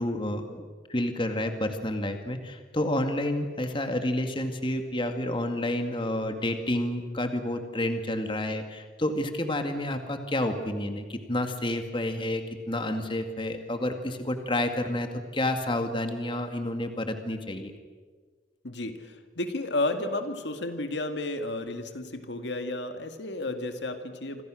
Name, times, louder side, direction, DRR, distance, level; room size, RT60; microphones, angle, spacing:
voice 1, 0.0-17.7, left 1 dB, 30° left, 6 dB, 2.1 m, -30 dB
voice 2, 18.6-24.4, left 2 dB, 75° left, 7 dB, 2.0 m, -32 dB
27.5 x 26.5 x 6.4 m, 1.5 s
head